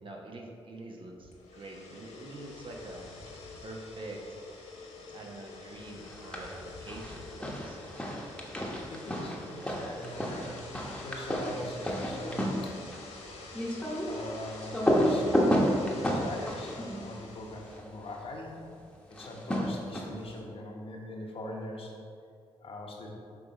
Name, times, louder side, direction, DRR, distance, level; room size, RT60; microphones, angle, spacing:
voice 1, 0.0-4.2 5.1-7.8, right 2 dB, 50° right, 0 dB, 1.0 m, -45 dB
sound 1, 1.2-17.8, left 3 dB, 85° left, 1.0 m, -47 dB
sound 2, 6.0-6.6 6.9-17.9 19.1-20.3, equal, 10° left, 1.1 m, -31 dB
voice 2, 8.9-12.7 13.1-13.4 14.1-15.7 16.0-18.6 19.1-22.0 22.6-23.1, left 1 dB, 55° left, -1 dB, 1.1 m, -42 dB
5.9 x 3.2 x 5.1 m, 2.4 s
cardioid pair, 65°, 11 cm